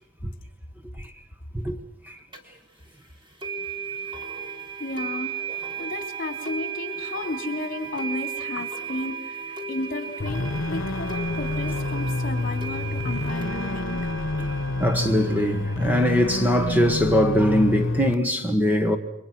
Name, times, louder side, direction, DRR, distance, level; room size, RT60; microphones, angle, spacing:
sound 1, 2.3-2.4 3.4-15.8, right 5 dB, 25° right, 3.5 m, -35 dB
voice 1, 4.8-5.4 5.8-14.1, left 2 dB, 45° left, 3.2 m, -33 dB
sound 2, 10.2-18.1, left 2 dB, 80° left, 1.0 m, -28 dB
voice 2, 14.8-19.0, equal, 10° right, 1.3 m, -21 dB
29.0 x 23.5 x 6.1 m
head